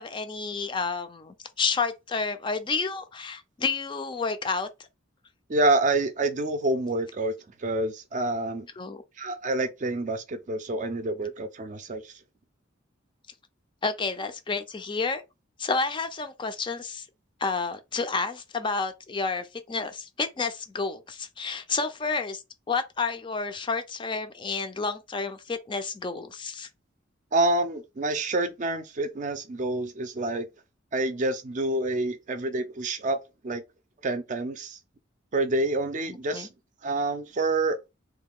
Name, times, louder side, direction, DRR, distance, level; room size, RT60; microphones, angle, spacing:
voice 1, 0.0-4.7 8.8-9.0 13.8-15.2 15.6-17.1 17.4-26.7 36.1-36.5, left 4 dB, 25° left, 0.4 m, -30 dB
voice 2, 5.5-7.3 7.6-8.7 9.2-12.1 27.3-30.5 30.9-33.2 33.4-33.6 34.0-34.8 35.3-36.5 36.8-37.8, right 2 dB, 40° right, 0.5 m, -27 dB
3.2 x 2.2 x 3.5 m
head